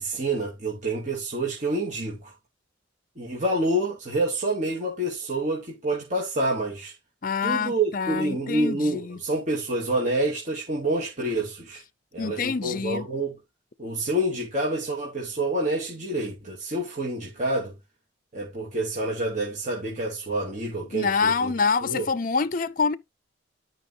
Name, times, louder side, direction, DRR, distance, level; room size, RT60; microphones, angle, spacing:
voice 1, 0.0-2.3 3.2-6.9 7.4-11.8 12.1-13.4 13.8-17.7 18.3-21.5 21.8-22.1, right 1 dB, 40° right, 2.5 m, -28 dB
voice 2, 7.2-9.2 12.2-13.1 20.9-23.0, left 5 dB, 45° left, 0.5 m, -26 dB
12.5 x 5.3 x 2.7 m
head